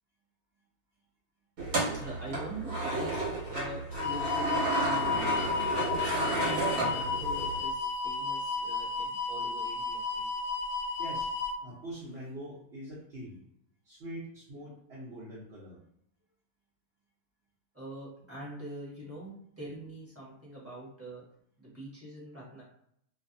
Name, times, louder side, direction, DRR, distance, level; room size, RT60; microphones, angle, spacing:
sound 1, 1.6-7.6, right 2 dB, 80° right, 1.4 m, -32 dB
voice 1, 1.9-3.2 3.5-5.9 6.3-10.3 17.7-21.2 21.6-22.6, right 1 dB, 10° right, -8 dB, 1.1 m, -43 dB
sound 2, 3.9-11.5, left 5 dB, 70° left, 0.9 m, -32 dB
voice 2, 11.0-11.3 11.6-13.4 13.8-15.8, right 1 dB, 50° right, -7 dB, 1.0 m, -43 dB
2.7 x 2.5 x 2.6 m, 0.72 s
omnidirectional pair, 1.5 m